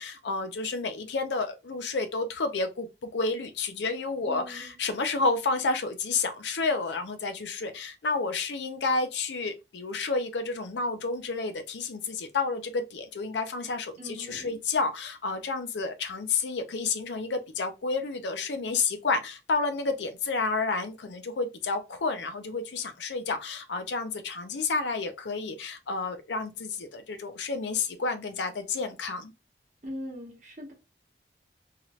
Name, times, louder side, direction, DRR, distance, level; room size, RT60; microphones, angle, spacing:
voice 1, 0.0-2.9 3.1-29.3, left 3 dB, 90° left, 0.5 m, -30 dB
voice 2, 4.3-4.8 14.0-14.6 29.8-30.7, equal, 45° right, 1.0 m, -41 dB
3.0 x 2.9 x 2.4 m
head